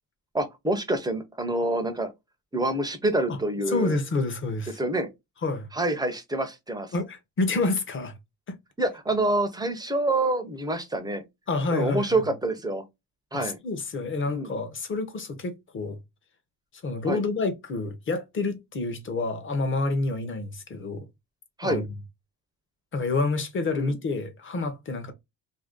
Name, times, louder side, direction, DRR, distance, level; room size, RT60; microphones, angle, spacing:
voice 1, 0.3-2.1 2.5-4.0 4.8-5.1 5.7-6.9 8.8-11.2 11.7-12.8 13.3-13.6 14.3-14.5 17.1-17.2 21.6-21.8 23.7-23.9, right 2 dB, 10° right, 0.6 m, -27 dB
voice 2, 3.7-4.8 5.4-5.7 6.9-8.1 8.5-8.6 11.5-12.2 13.3-16.0 16.8-21.1 21.6-21.9 22.9-25.1, left 3 dB, 30° left, 0.8 m, -28 dB
2.7 x 2.7 x 3.6 m
cardioid pair, 155°, 38 cm